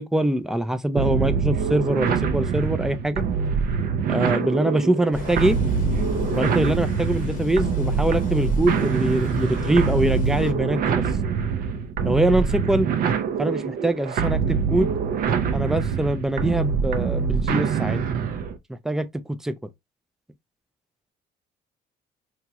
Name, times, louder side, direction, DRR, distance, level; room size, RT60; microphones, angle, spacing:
voice 1, 0.0-3.2 4.1-5.6 6.3-11.0 12.0-12.9 13.4-14.9 15.5-18.0 18.8-19.1 19.4-19.5, right 1 dB, 5° right, 0.4 m, -23 dB
sound 1, 1.0-18.6, right 6 dB, 60° right, 0.5 m, -25 dB
sound 2, 5.1-10.5, left 4 dB, 50° left, 0.8 m, -31 dB
2.9 x 2.9 x 2.3 m
cardioid pair, 110°, 17 cm